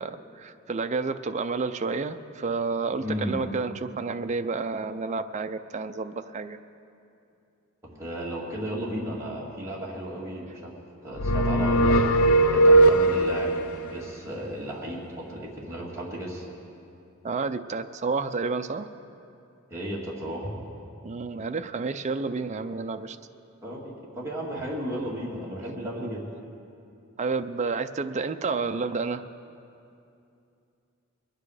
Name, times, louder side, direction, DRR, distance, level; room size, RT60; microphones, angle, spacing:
voice 1, 0.0-6.6 17.2-18.9 21.0-23.2 26.0-26.2 27.2-29.2, right 4 dB, 35° right, 8 dB, 0.5 m, -30 dB
voice 2, 3.0-3.4 7.8-10.7 11.0-12.1 12.5-16.5 19.7-20.5 23.6-26.3, equal, 15° right, -5 dB, 2.1 m, -34 dB
sound 1, 11.2-13.6, right 1 dB, 90° left, 0.6 m, -19 dB
22.0 x 9.2 x 4.9 m, 2.6 s
head